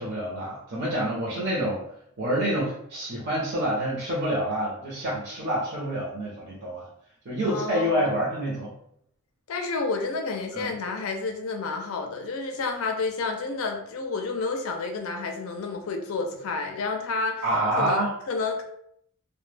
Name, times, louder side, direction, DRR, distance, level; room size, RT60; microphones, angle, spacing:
voice 1, 0.0-1.8 2.2-6.8 7.2-8.7 10.5-10.7 17.4-18.1, right 1 dB, 50° right, -6 dB, 0.6 m, -27 dB
voice 2, 7.5-8.1 9.5-17.4 17.8-18.6, left 4 dB, 65° left, 4 dB, 0.4 m, -30 dB
2.1 x 2.1 x 3.2 m, 0.72 s
head